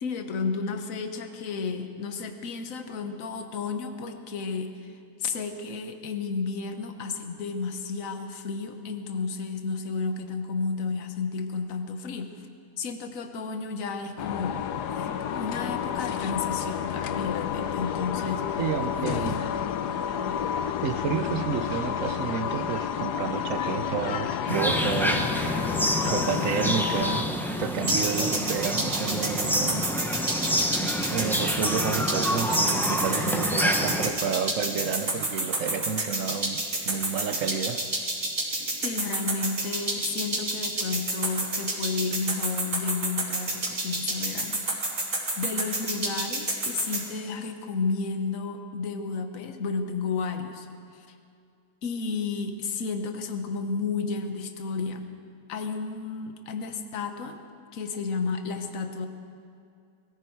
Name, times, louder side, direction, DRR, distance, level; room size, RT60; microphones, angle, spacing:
voice 1, 0.0-4.9 5.2-12.5 12.8-18.6 18.9-19.4 38.8-50.7 50.9-51.1 51.8-55.0 55.5-57.4 57.7-59.1, left 4 dB, 60° left, 7 dB, 1.4 m, -32 dB
sound 1, 14.2-27.2, left 8 dB, 90° left, 1.3 m, -30 dB
voice 2, 18.6-19.4 20.8-25.3 26.0-27.3 27.6-29.9 30.8-37.8, right 7 dB, 60° right, 9 dB, 1.0 m, -30 dB
sound 2, 24.5-34.1, equal, ahead, 0.6 m, -27 dB
sound 3, 27.9-47.0, right 2 dB, 80° right, 4.0 m, -29 dB
21.5 x 15.0 x 4.6 m, 2.4 s
omnidirectional pair, 1.7 m